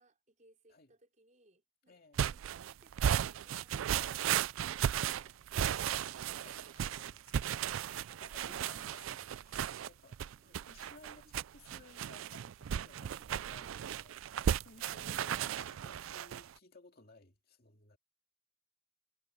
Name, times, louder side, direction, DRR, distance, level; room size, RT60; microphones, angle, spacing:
voice 1, 0.0-7.2 10.2-11.4, right 2 dB, 40° right, 5.0 m, -68 dB
voice 2, 1.9-2.3 5.0-5.3 6.4-7.2 7.5-7.9 8.2-18.0, left 3 dB, 50° left, 2.5 m, -59 dB
sound 1, 2.2-16.5, right 9 dB, 85° right, 0.4 m, -35 dB
head